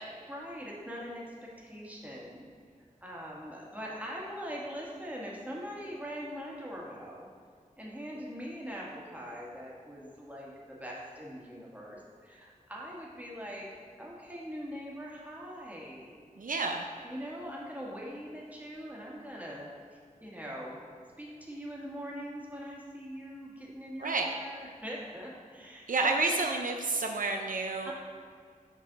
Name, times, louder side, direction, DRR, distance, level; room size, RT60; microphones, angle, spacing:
voice 1, 0.3-1.2 1.6-2.5 3.0-7.3 7.8-13.7 14.0-16.1 17.0-20.8 21.2-26.2 27.8-27.9, equal, 10° right, -4 dB, 1.6 m, -42 dB
voice 2, 16.4-16.8 24.0-24.3 25.9-27.9, right 3 dB, 75° right, 3 dB, 0.4 m, -30 dB
6.2 x 5.4 x 4.0 m, 2.1 s
wide cardioid pair, 45°, 14 cm